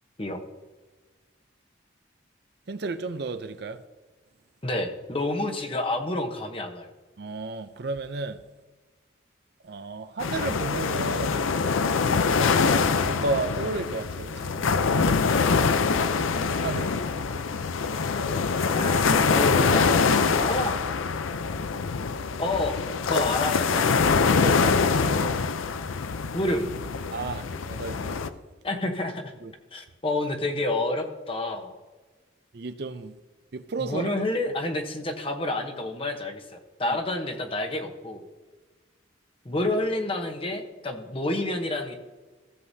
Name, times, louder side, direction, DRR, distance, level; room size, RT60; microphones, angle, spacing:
voice 1, 2.7-3.8 7.2-8.4 9.6-11.4 13.0-14.9 16.6-16.9 24.4-24.6 25.0-25.4 27.1-28.3 29.4-29.5 32.5-33.2 33.5-34.1, right 3 dB, 55° right, 0.5 m, -32 dB
voice 2, 4.6-6.9 18.6-19.9 20.4-20.8 22.4-22.8 23.1-24.2 26.3-26.7 28.6-29.3 29.7-31.7 33.8-38.2 39.4-41.9, left 1 dB, 25° left, 0.9 m, -29 dB
sound 1, 10.2-28.3, left 5 dB, 85° left, 0.5 m, -24 dB
15.0 x 7.7 x 2.7 m
head